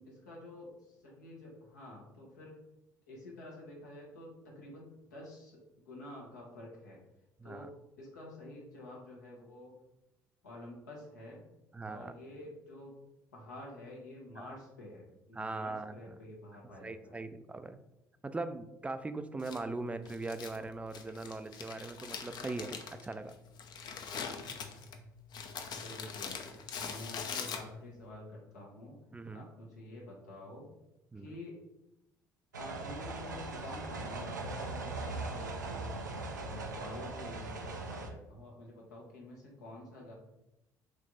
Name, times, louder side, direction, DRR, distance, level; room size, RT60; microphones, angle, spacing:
voice 1, 0.0-2.6 3.1-5.6 5.8-7.0 7.4-7.7 8.0-9.7 10.4-11.4 11.8-12.9 13.3-17.2 25.7-26.4 26.9-29.0 29.3-30.7 31.1-31.5 32.6-35.9 36.4-40.1, left 1 dB, 80° left, -3 dB, 1.1 m, -49 dB
voice 2, 11.7-12.1 14.4-14.6 15.3-16.2 16.8-17.8 18.2-23.3 26.8-27.0 29.1-29.5 31.1-31.3, right 3 dB, 15° right, 11 dB, 0.3 m, -40 dB
Crumpling crinkling, 19.4-28.0, left 6 dB, 50° left, 0.6 m, -43 dB
sound 1, 32.5-38.1, right 3 dB, 85° right, 0.4 m, -40 dB
3.2 x 3.2 x 3.9 m, 0.90 s
figure-of-eight pair, 55°, 9 cm